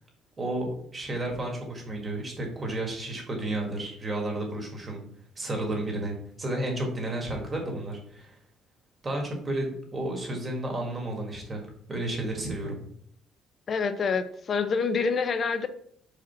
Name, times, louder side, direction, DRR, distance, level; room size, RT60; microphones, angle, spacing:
voice 1, 0.4-5.0 5.4-8.4 9.0-11.6 11.9-12.8, right 1 dB, 20° right, 1 dB, 1.7 m, -32 dB
voice 2, 13.7-15.7, left 5 dB, 35° left, 10 dB, 0.6 m, -27 dB
5.0 x 4.4 x 5.8 m, 0.65 s
cardioid pair, 155°, 0 cm